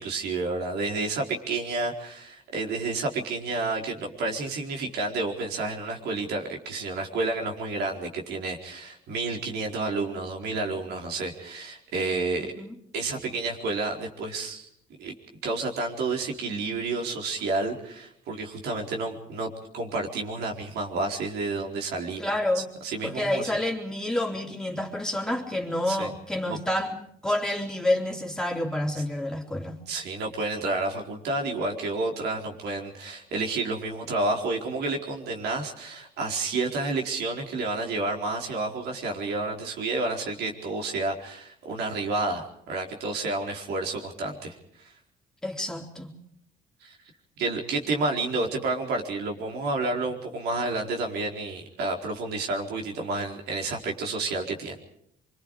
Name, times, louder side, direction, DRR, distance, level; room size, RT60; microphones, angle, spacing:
voice 1, 0.0-12.5 12.9-14.7 15.0-15.1 15.4-22.3 22.5-23.5 25.9-26.1 26.5-26.6 29.9-44.9 46.8-47.0 47.4-54.8, right 3 dB, 75° right, 2 dB, 4.5 m, -30 dB
voice 2, 12.4-12.8 22.2-22.7 23.0-29.8 45.4-46.1, left 1 dB, 5° left, 0 dB, 3.8 m, -29 dB
25.0 x 25.0 x 5.0 m, 0.70 s
cardioid pair, 110°, 17 cm